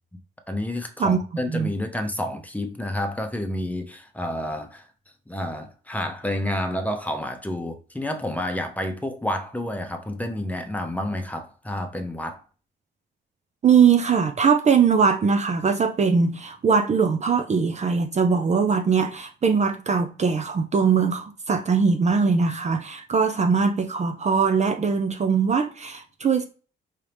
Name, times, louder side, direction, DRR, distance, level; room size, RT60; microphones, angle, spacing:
voice 1, 0.5-4.9 5.3-12.4, left 1 dB, 5° left, 0.8 m, -29 dB
voice 2, 13.6-26.4, right 5 dB, 35° right, 0.6 m, -21 dB
4.9 x 2.8 x 3.3 m
cardioid pair, 90°, 20 cm